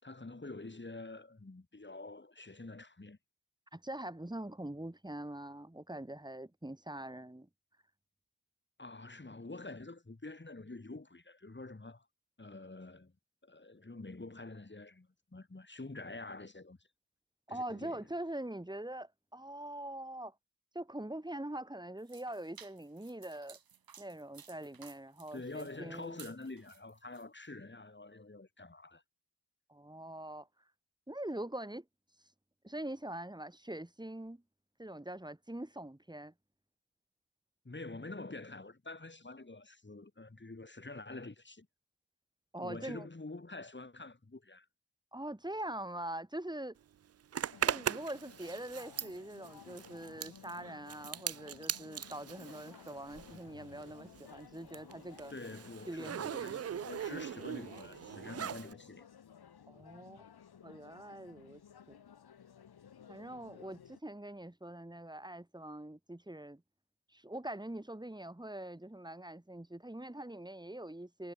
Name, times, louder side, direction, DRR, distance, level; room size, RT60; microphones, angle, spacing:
voice 1, 0.0-3.2 8.8-12.1 12.4-13.1 13.4-16.8 17.5-18.1 25.3-29.0 37.7-41.7 42.6-44.7 55.3-59.1, left 2 dB, 30° left, 6.8 m, -47 dB
voice 2, 3.7-7.5 17.5-20.3 20.7-23.6 24.0-26.2 29.7-30.5 31.1-31.8 32.6-34.4 34.8-36.3 42.5-43.1 45.1-46.8 47.7-55.3 55.9-56.8 59.7-60.2 60.6-61.6 61.9-62.0 63.1-66.6 67.1-71.3, right 1 dB, 10° right, 4.0 m, -43 dB
sound 1, 22.0-27.2, right 7 dB, 70° right, 2.0 m, -57 dB
Zipper (clothing), 47.3-53.5 53.8-58.7, right 9 dB, 40° right, 0.5 m, -40 dB
sound 2, 47.5-64.0, left 8 dB, 85° left, 4.7 m, -56 dB
cardioid pair, 50°, 37 cm